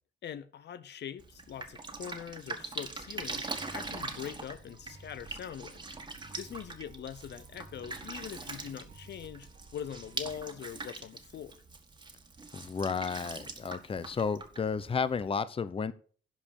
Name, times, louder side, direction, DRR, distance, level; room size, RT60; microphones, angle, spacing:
voice 1, 0.2-6.0 6.4-11.5, left 9 dB, 60° left, 0.7 m, -43 dB
Drip, 1.2-15.3, right 3 dB, 20° right, 1.7 m, -43 dB
sound 1, 3.1-10.4, right 3 dB, 45° right, 1.5 m, -55 dB
voice 2, 12.5-15.9, left 5 dB, 30° left, 0.7 m, -32 dB
11.0 x 5.2 x 6.5 m
cardioid pair, 90°, 20 cm